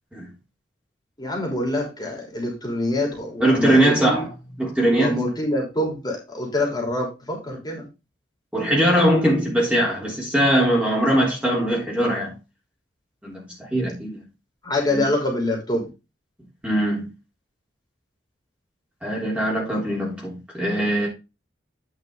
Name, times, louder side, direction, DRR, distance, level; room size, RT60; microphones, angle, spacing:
voice 1, 1.2-4.2 4.9-7.9 14.6-15.9, left 1 dB, 25° left, 3.4 m, -25 dB
voice 2, 3.4-5.2 8.5-12.3 13.2-14.2 14.9-15.0 16.6-17.1 19.0-21.1, right 1 dB, 5° right, 3.4 m, -21 dB
9.5 x 5.8 x 3.8 m
head